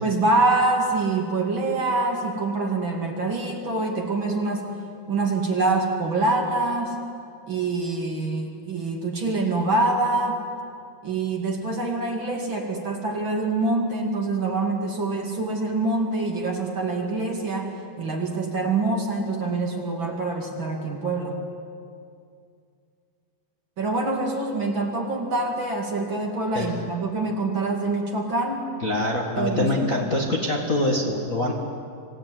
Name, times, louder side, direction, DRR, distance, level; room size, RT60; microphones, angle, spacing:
voice 1, 0.0-4.7 5.1-7.0 7.5-10.5 11.0-21.4 23.8-28.7 29.4-29.9, right 2 dB, 35° right, 2 dB, 2.3 m, -25 dB
voice 2, 28.8-31.5, left 1 dB, 90° left, 0 dB, 0.7 m, -24 dB
27.0 x 17.5 x 9.4 m, 2.4 s
omnidirectional pair, 4.8 m